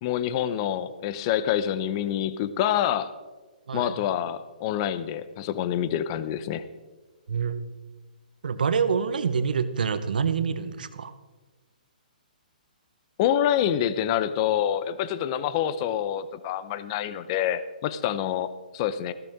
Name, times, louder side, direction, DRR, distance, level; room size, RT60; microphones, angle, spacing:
voice 1, 0.0-3.1 3.7-6.6 13.2-18.5 18.7-19.1, left 10 dB, 35° left, 13 dB, 0.8 m, -26 dB
voice 2, 7.3-7.6 8.4-11.1, right 6 dB, 70° right, 12 dB, 1.0 m, -26 dB
15.0 x 13.5 x 3.6 m, 1.3 s
hypercardioid pair, 135°, 5 cm